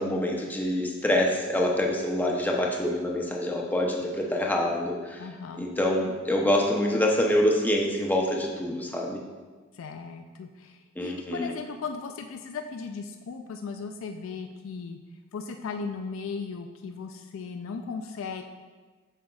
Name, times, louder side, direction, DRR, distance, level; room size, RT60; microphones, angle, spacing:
voice 1, 0.0-5.2 5.6-9.2 11.0-11.5, left 1 dB, 10° left, 0 dB, 0.7 m, -26 dB
voice 2, 5.2-5.7 9.7-15.0 15.3-18.4, left 5 dB, 75° left, 6 dB, 0.4 m, -37 dB
7.5 x 6.4 x 2.4 m, 1.4 s
head